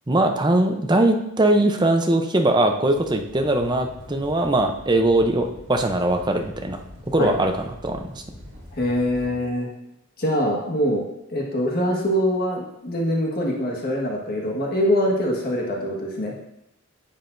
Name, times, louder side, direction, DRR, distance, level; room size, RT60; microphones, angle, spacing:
voice 1, 0.1-6.8 7.1-8.2, right 1 dB, 20° right, 4 dB, 0.7 m, -21 dB
sound 1, 2.9-9.4, left 1 dB, 65° right, 2.1 m, -44 dB
voice 2, 8.8-9.7 10.2-11.0 11.3-16.3, equal, 45° left, -1 dB, 1.6 m, -23 dB
10.0 x 7.2 x 2.6 m, 0.83 s
head